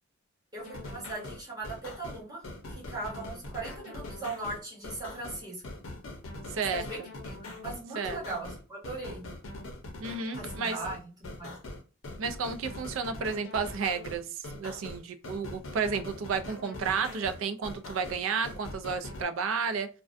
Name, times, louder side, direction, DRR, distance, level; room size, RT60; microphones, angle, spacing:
voice 1, 0.5-2.4 2.7-5.6 6.5-9.3 10.4-11.5, right 2 dB, 20° right, -6 dB, 1.1 m, -39 dB
sound 1, 0.6-19.2, left 2 dB, 65° left, 0.6 m, -42 dB
voice 2, 6.5-7.1 8.0-8.2 10.0-10.8 12.2-19.9, right 5 dB, 65° right, 10 dB, 0.3 m, -32 dB
2.4 x 2.1 x 2.5 m, 0.34 s
head